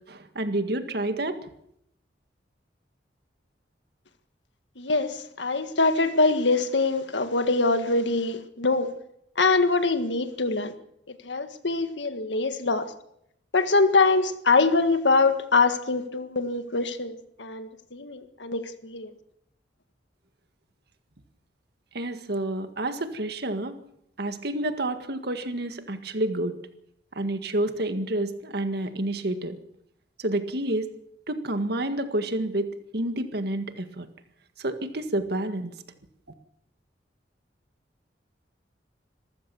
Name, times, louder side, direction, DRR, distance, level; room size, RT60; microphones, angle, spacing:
voice 1, 0.1-1.5 21.9-23.8 24.2-26.6 27.1-29.6 30.2-30.9 31.3-34.1 34.6-35.8, right 1 dB, 60° right, 8 dB, 1.9 m, -29 dB
voice 2, 4.8-8.9 9.4-10.7 11.3-12.9 13.5-19.1, left 3 dB, 85° left, 9 dB, 1.8 m, -24 dB
26.0 x 14.5 x 7.1 m, 0.75 s
head